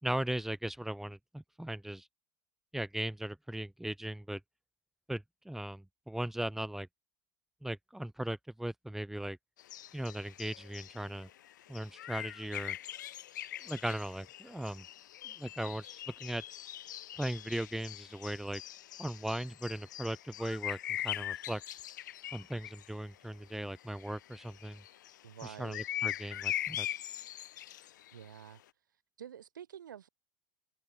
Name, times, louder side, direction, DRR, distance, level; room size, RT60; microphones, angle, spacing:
voice 1, 0.0-2.1 2.7-4.4 5.1-6.9 7.6-9.4 9.9-11.3 11.7-12.8 13.6-14.9 15.2-16.4 17.2-18.6 19.0-21.6 22.3-24.8 25.6-26.9, right 1 dB, 5° right, 6.1 m, -38 dB
sound 1, 9.6-22.9 23.6-28.3, left 12 dB, 70° left, 4.4 m, -42 dB
voice 2, 25.2-25.8 28.1-28.6 29.2-30.1, right 9 dB, 75° right, 5.6 m, -48 dB
figure-of-eight pair, 90°, 11 cm